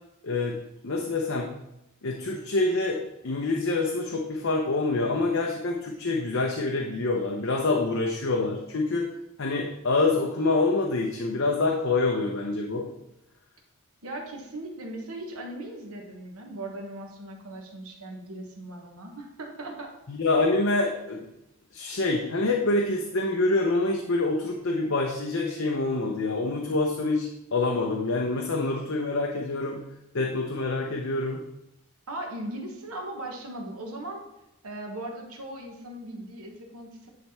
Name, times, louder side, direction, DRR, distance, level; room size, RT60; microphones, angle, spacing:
voice 1, 0.2-0.6 0.8-1.5 2.0-9.1 9.4-12.9 20.1-21.2 21.7-29.8 30.1-31.4, left 3 dB, 60° left, 0 dB, 0.7 m, -26 dB
voice 2, 14.0-19.9 32.1-34.2 34.6-37.1, right 1 dB, 75° right, 1 dB, 1.3 m, -38 dB
10.0 x 3.5 x 4.3 m, 0.88 s
head